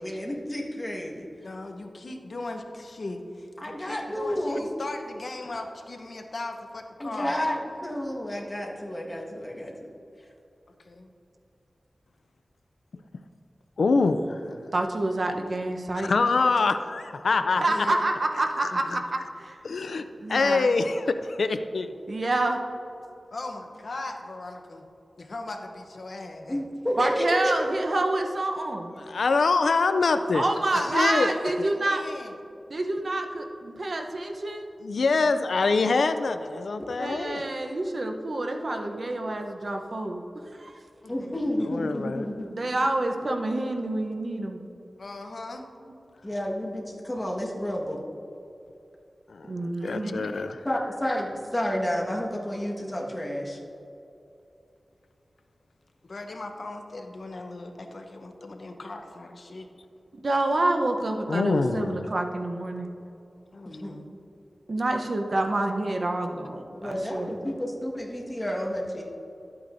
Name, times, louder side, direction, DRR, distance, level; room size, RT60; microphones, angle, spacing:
voice 1, 0.0-1.3 3.6-4.6 7.0-9.9 14.4-14.5 26.5-27.6 41.1-42.7 46.2-48.0 50.6-53.6 63.6-63.9 66.7-69.0, equal, 15° left, -2 dB, 1.5 m, -30 dB
voice 2, 1.4-7.4 10.8-11.1 17.7-18.0 18.7-19.0 23.3-24.9 25.2-26.6 30.4-32.3 41.0-41.3 41.6-41.7 45.0-45.6 56.0-59.7 63.5-64.1, left 2 dB, 65° left, 4 dB, 0.8 m, -38 dB
voice 3, 13.8-14.4 16.0-17.6 18.6-19.0 19.6-20.0 20.3-21.9 29.1-30.4 30.9-31.3 34.8-37.4 41.7-42.3 49.3-49.5 49.8-50.6 61.3-62.1, left 4 dB, 90° left, 9 dB, 0.4 m, -24 dB
voice 4, 14.7-16.1 17.6-18.8 19.4-19.6 20.2-20.7 22.1-22.6 27.0-28.9 30.3-32.0 32.7-34.7 37.0-40.2 40.6-40.8 42.6-44.6 49.5-50.3 60.2-62.9 64.7-67.5, right 2 dB, 55° right, 3 dB, 0.8 m, -28 dB
12.5 x 8.6 x 2.6 m, 2.8 s
wide cardioid pair, 85°, 0 cm